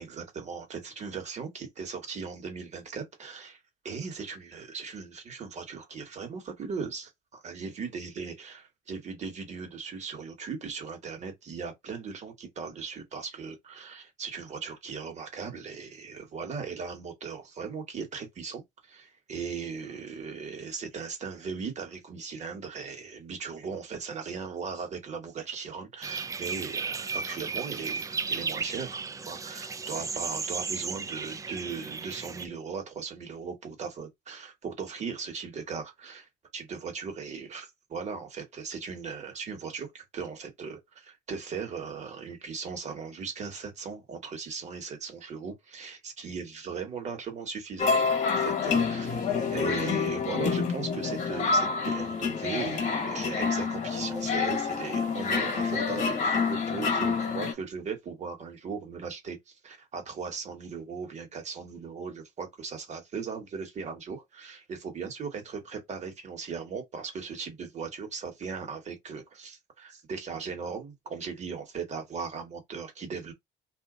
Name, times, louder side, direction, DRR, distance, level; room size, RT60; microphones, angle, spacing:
voice 1, 0.0-3.6 3.8-8.6 8.9-73.3, right 5 dB, 40° right, 1.5 m, -38 dB
sound 1, 26.0-32.5, right 5 dB, 20° right, 0.4 m, -34 dB
sound 2, 47.8-57.5, left 5 dB, 45° left, 1.2 m, -28 dB
2.8 x 2.3 x 3.7 m
cardioid pair, 110°, 17 cm